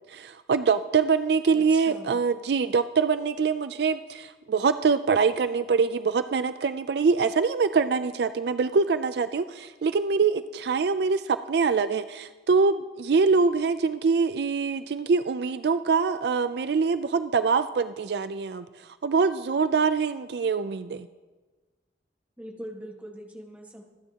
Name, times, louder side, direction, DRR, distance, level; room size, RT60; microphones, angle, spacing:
voice 1, 0.1-18.7 19.0-21.1, right 5 dB, 65° right, 12 dB, 0.4 m, -24 dB
voice 2, 1.5-2.2 22.4-23.8, equal, 10° right, 0 dB, 1.5 m, -42 dB
25.0 x 9.5 x 2.9 m, 1.3 s
head